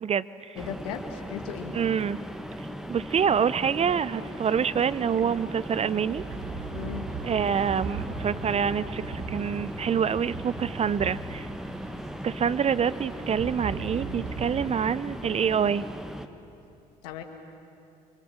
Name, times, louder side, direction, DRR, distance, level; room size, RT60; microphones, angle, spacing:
voice 1, 0.0-0.6 1.7-2.2 2.9-6.2 7.2-11.5 12.2-15.8, right 7 dB, 30° right, 18 dB, 0.6 m, -26 dB
voice 2, 0.5-1.8 6.7-7.1 17.0-17.2, left 9 dB, 70° left, 5 dB, 2.1 m, -37 dB
sound 1, 0.5-16.3, equal, ahead, 1.7 m, -38 dB
Synthetic Thunderstorm, 3.1-14.7, right 4 dB, 55° right, 2.3 m, -40 dB
29.5 x 24.5 x 6.6 m, 2.7 s
figure-of-eight pair, 50°, 20 cm